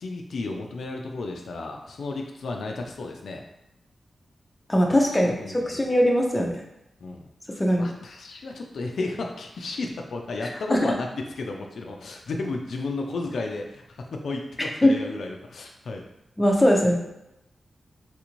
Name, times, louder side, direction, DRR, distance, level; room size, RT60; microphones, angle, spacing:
voice 1, 0.0-3.4 5.2-5.9 7.0-16.0, left 3 dB, 80° left, 2 dB, 0.4 m, -33 dB
voice 2, 4.7-6.6 7.6-7.9 10.4-10.9 14.8-15.0 16.4-17.0, equal, 15° left, 0 dB, 0.5 m, -21 dB
3.3 x 2.5 x 3.0 m, 0.86 s
wide cardioid pair, 125°, 0 cm